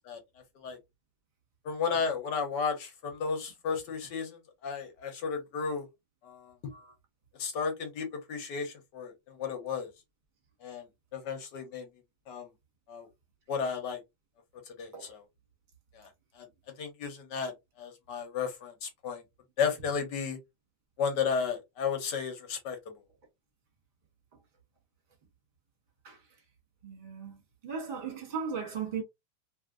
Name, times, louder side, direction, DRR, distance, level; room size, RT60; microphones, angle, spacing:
voice 1, 1.6-5.8 6.2-6.5 7.4-9.9 10.6-10.9 11.1-11.9 12.3-12.5 12.9-13.1 13.5-14.0 14.7-15.2 15.9-16.1 16.3-16.5 16.8-19.2 19.6-20.4 21.0-22.8, left 6 dB, 60° left, 1.3 m, -33 dB
voice 2, 26.8-27.4 27.6-29.0, right 6 dB, 30° right, 1.0 m, -37 dB
3.2 x 2.7 x 2.4 m
omnidirectional pair, 2.4 m